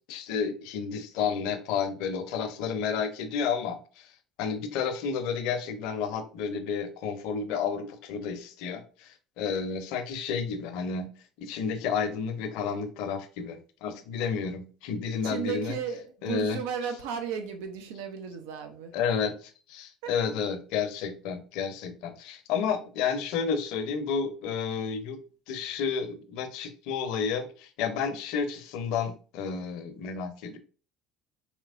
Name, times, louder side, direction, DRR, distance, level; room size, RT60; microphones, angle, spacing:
voice 1, 0.1-4.1 4.4-11.1 11.4-15.8 16.2-16.6 18.9-25.2 25.5-30.6, left 6 dB, 75° left, 0.6 m, -31 dB
voice 2, 15.2-18.9 20.0-20.2, right 7 dB, 80° right, 0.6 m, -34 dB
4.3 x 3.0 x 2.4 m
supercardioid pair, 90°, 0 cm